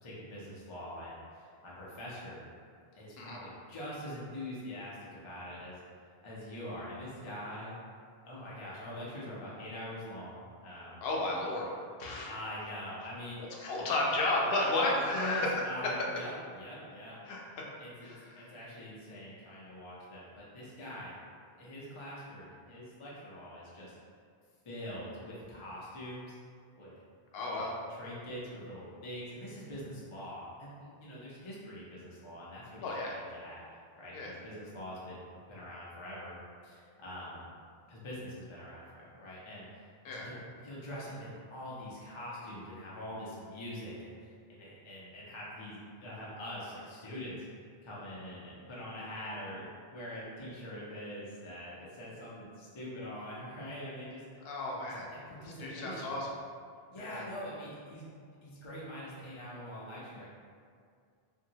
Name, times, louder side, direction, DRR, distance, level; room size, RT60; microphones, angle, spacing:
voice 1, 0.0-2.4 2.9-5.8 6.2-7.7 8.2-11.1 12.3-13.4 15.1-17.2 17.8-21.1 21.6-23.9 24.6-26.4 26.7-27.0 27.4-33.6 34.0-36.4 36.6-37.4 37.9-39.7 40.1-47.4 47.8-49.6 49.9-54.5 55.1-56.2 56.9-58.0 58.4-60.3, equal, 35° left, -7 dB, 0.5 m, -44 dB
voice 2, 11.0-11.7 12.0-12.3 13.6-15.5 17.2-17.6 18.0-18.5 27.3-27.7 32.8-33.2 34.1-34.3 40.0-40.3 54.4-55.1 55.6-56.3 57.0-57.2, left 2 dB, 75° left, -2 dB, 0.8 m, -33 dB
2.7 x 2.7 x 2.7 m, 2.1 s
omnidirectional pair, 1.0 m